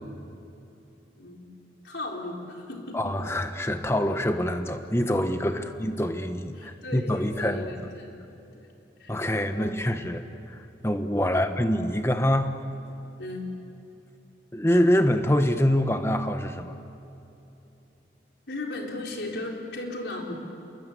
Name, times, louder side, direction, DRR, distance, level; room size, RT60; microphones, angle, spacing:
voice 1, 1.8-3.1 5.6-5.7 6.6-8.1 8.5-8.7 9.0-9.2 9.5-9.7 11.3-11.5 13.2-13.5 18.5-20.3, left 2 dB, 75° left, 0 dB, 4.3 m, -36 dB
voice 2, 2.9-7.7 9.1-10.2 10.5-12.5 14.5-16.7, equal, 15° left, 7 dB, 1.2 m, -25 dB
28.0 x 22.0 x 8.3 m, 2.9 s
head